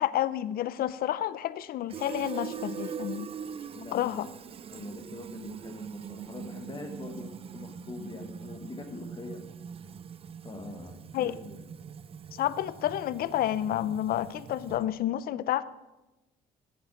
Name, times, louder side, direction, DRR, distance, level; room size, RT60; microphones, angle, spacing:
voice 1, 0.0-3.3 3.9-4.3 11.1-11.3 12.3-15.6, left 12 dB, 60° left, 17 dB, 0.6 m, -30 dB
Fill (with liquid), 1.9-15.0, right 7 dB, 35° right, 0.5 m, -42 dB
voice 2, 3.7-4.2 4.7-9.5 10.4-11.7, left 2 dB, 25° left, 5 dB, 1.2 m, -43 dB
9.3 x 7.8 x 7.5 m, 1.1 s
cardioid pair, 110°, 17 cm